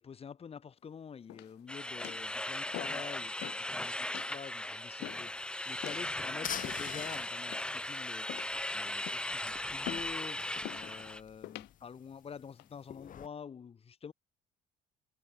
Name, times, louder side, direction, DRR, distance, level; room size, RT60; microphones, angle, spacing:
voice 1, 0.0-8.4 8.7-14.1, left 7 dB, 35° left, 1.9 m, -47 dB
sound 1, 1.3-1.7 2.0-2.3 2.7-3.1 3.4-3.7 4.1-4.3 5.0-5.3 5.8-6.1 6.6-7.1 7.5-7.9 8.3-8.6 9.1-9.4 9.9-10.1 10.6-10.9 11.4-11.7 12.3-12.7, left 18 dB, 80° left, 1.6 m, -44 dB
sound 2, 1.7-11.2, left 1 dB, 5° left, 0.9 m, -38 dB
sound 3, 5.0-13.3, left 10 dB, 50° left, 3.1 m, -48 dB
cardioid pair, 110°, 17 cm